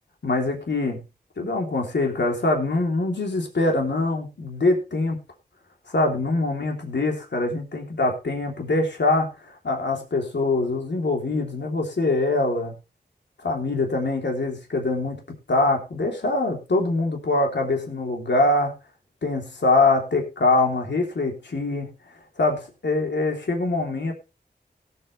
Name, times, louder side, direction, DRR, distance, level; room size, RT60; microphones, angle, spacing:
voice 1, 0.2-1.0 1.4-5.2 5.9-12.7 13.4-15.2 15.5-18.7 19.2-21.9 22.4-24.1, left 2 dB, 90° left, 1 dB, 3.3 m, -23 dB
18.0 x 8.9 x 3.3 m, 0.29 s
wide cardioid pair, 55°, 18 cm